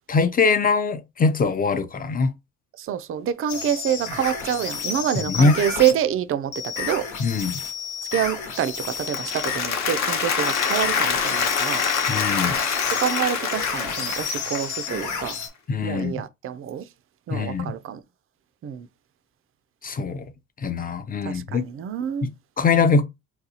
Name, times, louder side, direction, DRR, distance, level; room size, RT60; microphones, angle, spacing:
voice 1, 0.1-2.3 5.1-5.6 7.2-7.6 12.1-12.6 15.7-16.2 17.3-17.8 19.8-20.3 20.6-21.6 22.2-23.0, left 4 dB, 30° left, 0.5 m, -22 dB
voice 2, 2.8-7.1 8.1-11.8 12.9-15.3 15.8-16.9 17.3-18.0 18.6-18.9 21.3-22.3, right 10 dB, 45° right, 0.4 m, -26 dB
sound 1, 3.5-6.0 6.5-9.7 10.5-15.5, left 6 dB, 85° left, 1.1 m, -31 dB
Applause, 8.9-15.1, left 6 dB, 65° left, 0.9 m, -25 dB
4.0 x 2.3 x 2.8 m
cardioid pair, 90°, 30 cm